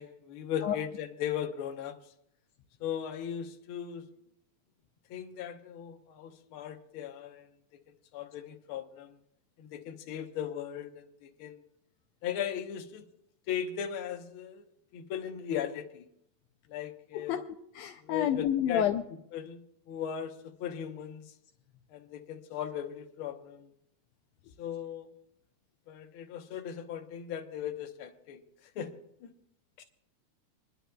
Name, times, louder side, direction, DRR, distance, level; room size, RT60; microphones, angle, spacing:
voice 1, 0.0-2.0 2.8-4.0 5.1-7.5 8.1-9.2 9.6-11.6 12.2-13.1 13.5-14.6 14.9-16.1 16.7-17.4 18.0-18.8 19.3-19.6 19.9-20.3 20.6-21.2 21.9-23.7 24.6-25.1 25.9-28.4 28.7-28.9 29.2-29.3, left 9 dB, 60° left, 4 dB, 1.5 m, -37 dB
voice 2, 17.8-19.0 29.8-29.9, left 10 dB, 80° left, 4 dB, 1.8 m, -29 dB
26.5 x 11.0 x 2.3 m, 0.75 s
omnidirectional pair, 3.3 m